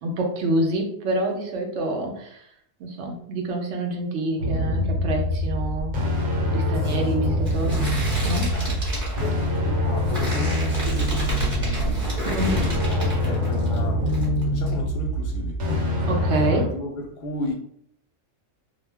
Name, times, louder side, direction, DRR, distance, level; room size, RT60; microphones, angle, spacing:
voice 1, 0.0-2.4 2.8-5.9 6.5-7.9 8.2-8.5 12.2-12.6 16.1-16.7, right 2 dB, 70° right, 1 dB, 0.9 m, -27 dB
sound 1, 4.4-16.7, left 1 dB, 90° right, 1.1 m, -25 dB
sound 2, 6.1-13.8 14.1-14.7, equal, 25° right, 1.1 m, -31 dB
voice 2, 9.2-15.6 15.9-17.5, left 1 dB, 55° left, 0 dB, 0.6 m, -34 dB
2.3 x 2.0 x 3.3 m, 0.68 s
omnidirectional pair, 1.3 m